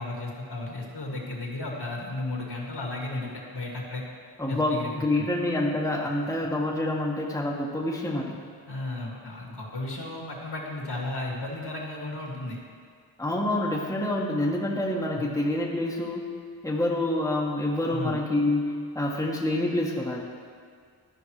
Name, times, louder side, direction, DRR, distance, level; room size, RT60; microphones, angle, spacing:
voice 1, 0.0-4.0 4.5-5.3 8.7-12.6 15.1-15.3 17.9-18.2, left 2 dB, 55° left, -2 dB, 2.1 m, -34 dB
voice 2, 4.4-8.4 13.2-16.3 16.6-20.2, left 1 dB, 5° left, -3 dB, 1.3 m, -27 dB
13.5 x 5.1 x 3.2 m, 2.1 s
cardioid pair, 40°, 48 cm